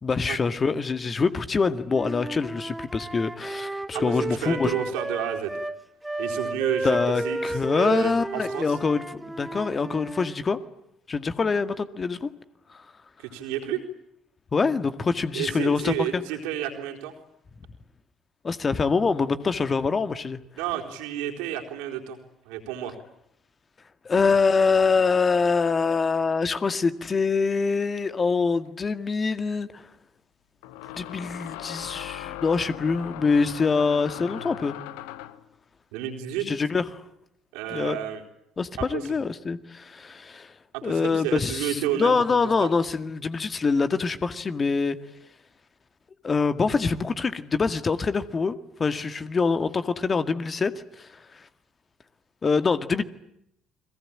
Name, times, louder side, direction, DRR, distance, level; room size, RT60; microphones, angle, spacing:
voice 1, 0.0-4.8 6.8-10.6 11.1-12.3 14.5-16.2 18.4-20.4 24.1-29.9 30.9-34.8 36.5-36.8 37.7-38.0 38.6-40.5 40.8-45.0 46.2-50.7 51.0-51.1 52.4-53.0, left 4 dB, 35° left, 1.9 m, -25 dB
Wind instrument woodwind instrument, 1.9-5.8 6.0-10.3, right 2 dB, 10° right, 2.1 m, -33 dB
voice 2, 3.9-5.5 6.2-8.8 13.2-13.8 15.3-17.1 20.6-22.2 22.5-23.0 35.9-36.5 37.5-38.2 38.8-39.2 40.7-42.2 42.6-42.7, right 10 dB, 70° right, 4.2 m, -31 dB
sound 1, 28.7-28.8 30.6-35.5, left 13 dB, 70° left, 1.3 m, -38 dB
30.0 x 22.0 x 8.9 m
figure-of-eight pair, 50°, 0 cm